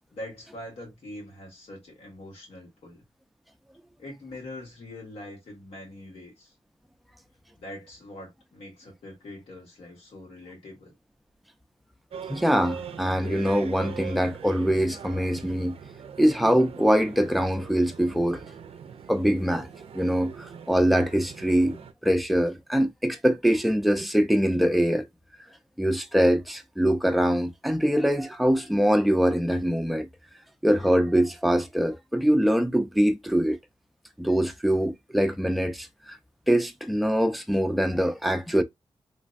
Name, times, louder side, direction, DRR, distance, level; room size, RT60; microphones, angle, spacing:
voice 1, 0.1-3.0 4.0-6.5 7.6-10.9, left 1 dB, 90° left, 1.7 m, -43 dB
sound 1, 12.1-21.9, right 7 dB, 90° right, 0.4 m, -42 dB
voice 2, 12.3-15.8 16.2-18.4 19.1-25.1 25.8-30.1 30.6-33.6 34.2-36.2 36.5-38.6, equal, ahead, 0.4 m, -23 dB
3.1 x 2.1 x 2.5 m
wide cardioid pair, 110°, 10 cm